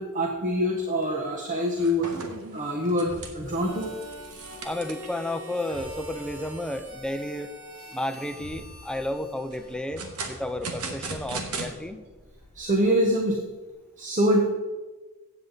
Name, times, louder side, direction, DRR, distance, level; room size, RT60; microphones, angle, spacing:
voice 1, 0.0-2.1 2.5-3.9 12.5-13.4 14.0-14.5, equal, 35° right, 1 dB, 1.1 m, -25 dB
sound 1, 1.0-1.2 1.5-5.3 5.7-5.8 6.3-6.4 6.8-7.3 7.8-8.5 9.5-11.7, right 3 dB, 90° right, 1.5 m, -38 dB
sound 2, 3.1-5.2 5.7-7.5 8.2-13.3, left 1 dB, 50° right, 3.0 m, -49 dB
Harmonica, 3.4-10.4, equal, 75° right, 2.7 m, -44 dB
voice 2, 4.6-7.5 7.9-12.0, left 1 dB, 5° left, 8 dB, 0.6 m, -32 dB
15.0 x 8.1 x 4.0 m, 1.3 s
head